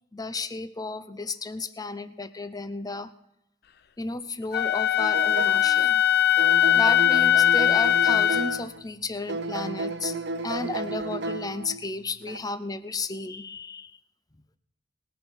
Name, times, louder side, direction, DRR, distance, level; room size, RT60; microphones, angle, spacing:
voice 1, 0.1-3.1 4.0-6.0 6.7-10.2 10.4-14.0, left 3 dB, 20° left, 13 dB, 0.6 m, -33 dB
Wind instrument woodwind instrument, 4.5-8.6, left 11 dB, 60° left, 0.5 m, -21 dB
sound 1, 5.0-5.9 6.4-8.8 9.3-11.8 12.2-12.4, right 3 dB, 70° right, 0.8 m, -33 dB
19.5 x 6.8 x 6.2 m, 0.82 s
head